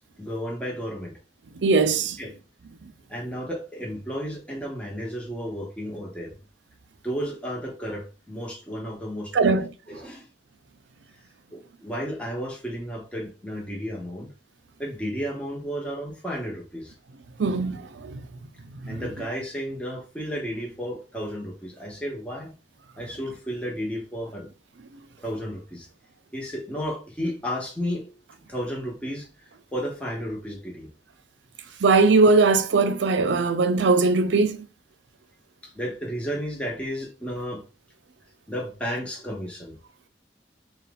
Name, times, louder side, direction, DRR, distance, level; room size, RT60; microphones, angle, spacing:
voice 1, 0.2-1.2 2.2-2.3 3.1-6.4 7.0-9.6 9.9-10.3 11.5-14.3 14.8-16.9 18.9-22.5 23.0-24.5 25.2-25.9 26.3-28.1 28.5-30.9 31.6-31.8 35.6-37.6 38.5-39.8, equal, 5° left, 1.1 m, -33 dB
voice 2, 1.6-2.2 9.3-9.7 17.4-18.2 18.9-19.0 31.8-34.6, right 3 dB, 90° right, 0.5 m, -20 dB
4.1 x 2.4 x 3.9 m
head